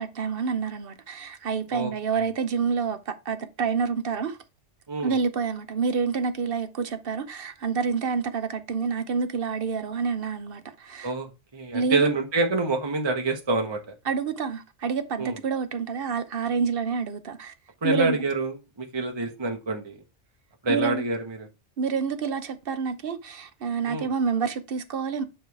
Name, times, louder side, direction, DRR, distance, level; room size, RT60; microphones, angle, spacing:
voice 1, 0.0-4.4 5.0-11.1 11.7-12.1 14.0-17.5 17.8-18.2 20.7-21.1 21.8-25.2, right 5 dB, 55° right, 1.0 m, -28 dB
voice 2, 1.7-2.2 4.9-5.2 11.0-13.9 15.2-15.4 17.8-20.0 20.6-21.5 23.9-24.1, right 2 dB, 25° right, 1.0 m, -27 dB
9.0 x 3.2 x 4.6 m
omnidirectional pair, 1.2 m